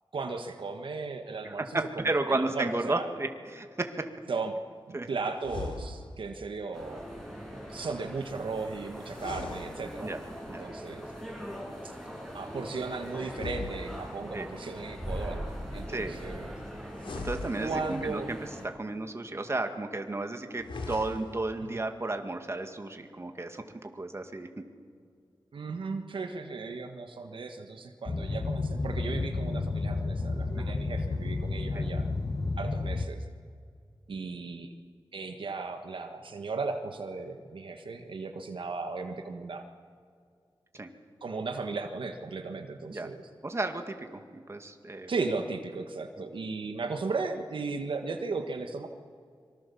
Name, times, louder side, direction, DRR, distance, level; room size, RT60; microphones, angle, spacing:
voice 1, 0.1-3.1 4.3-4.6 4.9-7.0 7.7-10.1 10.6-11.1 11.8-11.9 12.3-15.5 15.7-16.5 17.6-18.3 21.6-21.8 25.5-32.1 32.6-33.2 34.1-34.7 35.1-39.6 41.2-43.2 45.1-48.9, right 4 dB, 75° right, 5 dB, 1.5 m, -36 dB
voice 2, 1.4-4.1 4.9-5.1 10.0-10.2 10.5-10.7 14.3-14.5 15.9-16.2 17.2-18.4 18.6-24.6 30.5-30.7 31.7-31.8 40.7-40.9 42.9-43.1 43.4-45.1 46.2-46.3, right 2 dB, 30° right, 5 dB, 2.1 m, -33 dB
sound 1, 5.4-6.3 9.0-10.4 13.2-14.4 16.9-18.2 20.5-21.5, left 3 dB, 80° left, 3.1 m, -40 dB
sound 2, 6.7-18.7, equal, 5° left, 6.7 m, -41 dB
Boat Water vehicle, 28.1-33.1, left 3 dB, 45° left, 1.3 m, -31 dB
25.5 x 24.0 x 7.1 m, 2.2 s
wide cardioid pair, 95°, 9 cm